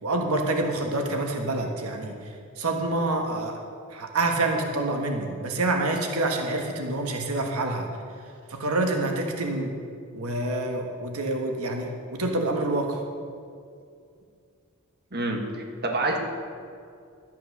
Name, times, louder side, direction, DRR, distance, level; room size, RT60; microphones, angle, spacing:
voice 1, 0.0-2.2 2.6-3.6 3.9-7.9 8.5-9.7 10.1-13.0, right 2 dB, 90° right, 3 dB, 1.3 m, -27 dB
voice 2, 15.1-16.2, right 2 dB, 50° right, 2 dB, 1.5 m, -27 dB
12.5 x 9.0 x 6.6 m, 2.3 s
head